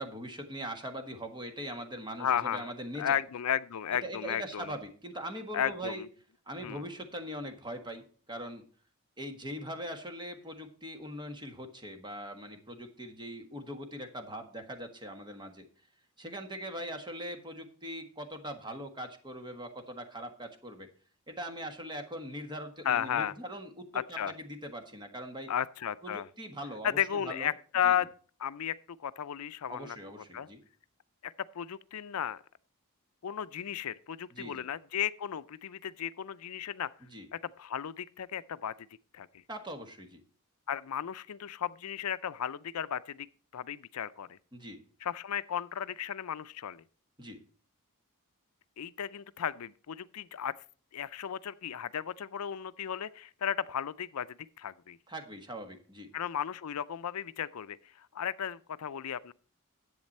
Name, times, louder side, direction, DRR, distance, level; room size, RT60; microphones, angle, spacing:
voice 1, 0.0-3.2 3.9-6.0 6.5-8.6 9.2-15.7 16.2-20.9 21.3-25.5 26.0-27.5 27.8-27.9 29.7-30.6 34.3-34.7 37.0-37.3 39.5-40.2 44.5-44.8 47.2-47.4 55.1-56.1, equal, 20° right, 1.5 m, -41 dB
voice 2, 2.2-2.7 3.0-4.7 5.5-6.1 6.6-6.8 22.9-23.3 23.9-24.3 25.5-26.3 26.8-28.1 28.4-30.0 30.3-30.5 31.2-32.4 33.2-36.9 37.3-38.7 39.1-39.3 40.7-43.3 43.5-44.4 45.0-46.8 48.8-50.5 50.9-54.3 54.6-55.0 56.1-59.3, left 9 dB, 80° left, 0.5 m, -34 dB
10.5 x 8.0 x 4.2 m
head